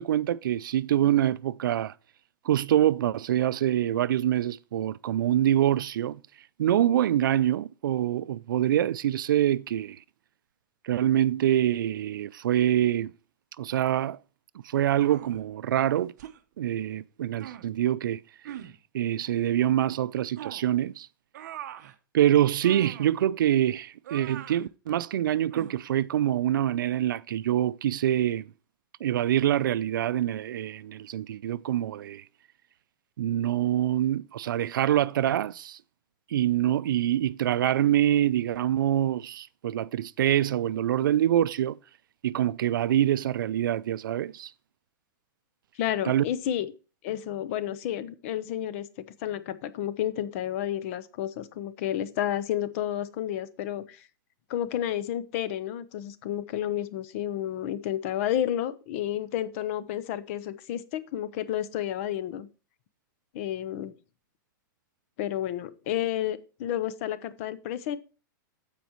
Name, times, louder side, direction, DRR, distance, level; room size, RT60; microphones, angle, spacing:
voice 1, 0.0-1.9 2.4-6.2 6.6-10.0 10.8-13.1 13.6-14.2 14.6-16.1 16.6-18.2 18.9-21.1 22.1-28.5 29.0-32.2 33.2-35.8 36.3-41.8 42.2-44.5 46.1-46.2, right 11 dB, 85° right, 0.4 m, -25 dB
sound 1, 15.0-15.4 16.2-16.4 17.4-17.7 18.4-18.8 20.4-20.7 21.3-21.9 22.6-23.1 24.0-24.7 25.5-25.8, right 11 dB, 60° right, 0.9 m, -41 dB
voice 2, 45.8-46.7 47.0-48.9 49.2-54.0 54.5-62.5 63.3-63.9 65.2-68.0, left 11 dB, 40° left, 0.8 m, -31 dB
15.0 x 5.1 x 3.0 m
supercardioid pair, 165°, 11 cm